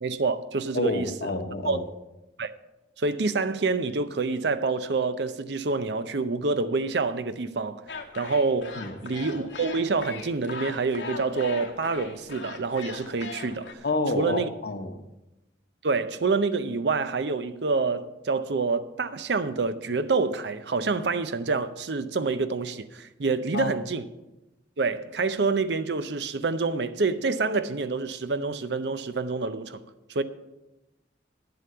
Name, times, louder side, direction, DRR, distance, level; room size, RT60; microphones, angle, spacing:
voice 1, 0.0-1.3 1.6-1.8 2.4-2.5 3.0-7.8 8.2-13.7 14.2-14.5 15.8-24.1 24.8-29.8 30.1-30.2, right 4 dB, 65° right, 0.6 m, -27 dB
voice 2, 0.7-1.8 8.8-8.9 13.8-15.0 23.5-23.7, left 2 dB, 60° left, 1.0 m, -28 dB
sound 1, 7.9-13.7, left 4 dB, 85° left, 1.4 m, -40 dB
10.0 x 7.9 x 6.7 m
head